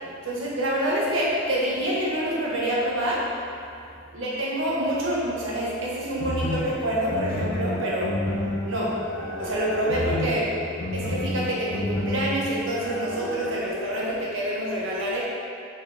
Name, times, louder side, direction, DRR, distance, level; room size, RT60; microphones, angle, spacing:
voice 1, 0.2-3.2 4.1-8.1 8.6-8.9 9.4-10.5 10.9-15.2, right 1 dB, 75° right, -5 dB, 1.5 m, -27 dB
sound 1, 6.2-13.6, left 1 dB, 65° left, 0.9 m, -30 dB
5.6 x 4.4 x 5.0 m, 2.4 s
head